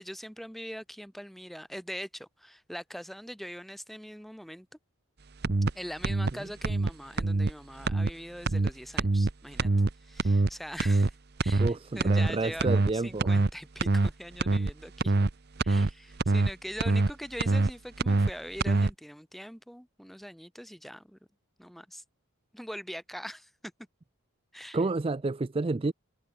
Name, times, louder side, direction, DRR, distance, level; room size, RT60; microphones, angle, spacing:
voice 1, 0.0-4.7 5.7-9.7 10.0-11.1 11.4-15.1 15.6-21.2 21.6-22.0 22.5-23.7 24.5-24.8, equal, ahead, 3.9 m, -42 dB
sound 1, 5.4-5.7 6.0-6.3 6.6-6.9 7.2-7.5 7.8-8.1 8.5-8.7 9.0-9.3 9.6-9.9 10.2-10.5 10.8-11.1 11.4-11.7 12.0-12.3 12.6-12.9 13.2-13.5 13.8-14.1 14.4-14.7 15.0-15.3 15.6-15.9 16.2-16.5 16.8-17.1 17.4-17.7 18.0-18.3 18.6-18.9, right 2 dB, 45° right, 0.7 m, -24 dB
voice 2, 11.6-13.4 24.7-25.9, right 3 dB, 25° right, 0.4 m, -30 dB
head